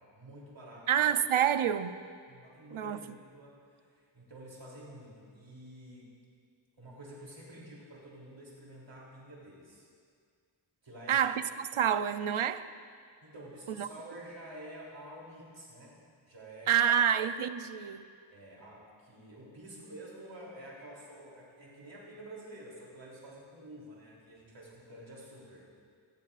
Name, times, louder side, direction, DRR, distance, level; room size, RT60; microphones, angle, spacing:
voice 1, 0.1-1.1 2.3-6.1 6.8-9.9 10.8-11.3 11.7-11.9 13.2-16.9 18.3-25.6, right 1 dB, 65° right, 3.1 m, -49 dB
voice 2, 0.9-2.0 2.7-3.0 11.1-12.7 13.8-13.9 16.7-18.1, right 9 dB, 85° right, 0.6 m, -28 dB
19.5 x 15.5 x 2.5 m
wide cardioid pair, 50°, 49 cm